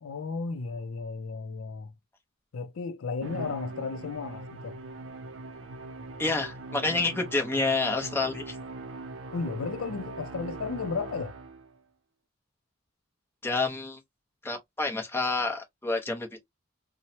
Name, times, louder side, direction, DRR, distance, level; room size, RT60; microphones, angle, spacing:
voice 1, 0.0-1.9 2.5-4.8 9.3-11.4, left 4 dB, 75° left, 0.4 m, -34 dB
Musical instrument, 3.2-11.8, right 2 dB, 60° right, 0.5 m, -41 dB
voice 2, 6.2-8.6 13.4-14.0 14.4-16.5, left 3 dB, 10° left, 0.7 m, -28 dB
2.9 x 2.1 x 2.7 m
head